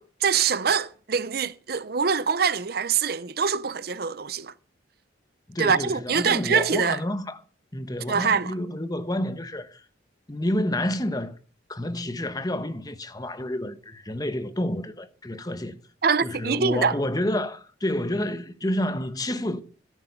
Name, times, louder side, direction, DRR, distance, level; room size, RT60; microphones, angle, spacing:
voice 1, 0.0-4.5 5.6-7.0 8.1-8.5 16.0-16.9, right 6 dB, 55° right, 0.6 m, -24 dB
voice 2, 5.5-7.4 7.7-9.8 10.3-11.4 11.7-15.8 16.2-19.6, left 1 dB, 20° left, 1.1 m, -29 dB
14.0 x 11.0 x 5.6 m
head